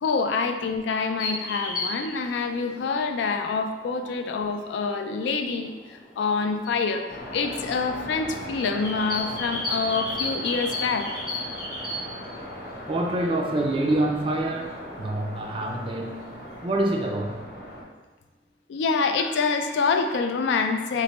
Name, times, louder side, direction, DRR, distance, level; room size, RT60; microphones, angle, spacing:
voice 1, 0.0-11.1 18.7-21.0, left 4 dB, 80° left, 6 dB, 0.3 m, -26 dB
sound 1, 1.2-16.6, left 2 dB, 25° left, 0.5 m, -37 dB
sound 2, 7.1-17.8, equal, 60° left, 0.8 m, -39 dB
voice 2, 12.9-16.2 16.6-17.4, right 1 dB, 30° right, 1 dB, 0.3 m, -26 dB
3.1 x 2.1 x 3.9 m, 1.2 s
head